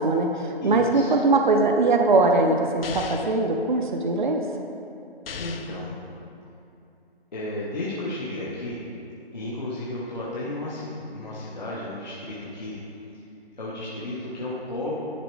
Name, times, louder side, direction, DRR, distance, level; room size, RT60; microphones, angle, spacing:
voice 1, 0.0-4.4, right 3 dB, 50° right, 3 dB, 0.5 m, -21 dB
voice 2, 0.6-1.2 5.3-5.9 7.3-8.8 9.3-12.8 13.6-14.9, left 2 dB, 45° left, -8 dB, 1.0 m, -33 dB
sound 1, 2.8-3.4 5.3-5.9, left 5 dB, 60° left, 0.5 m, -36 dB
10.0 x 4.1 x 4.7 m, 2.7 s
hypercardioid pair, 175°, 32 cm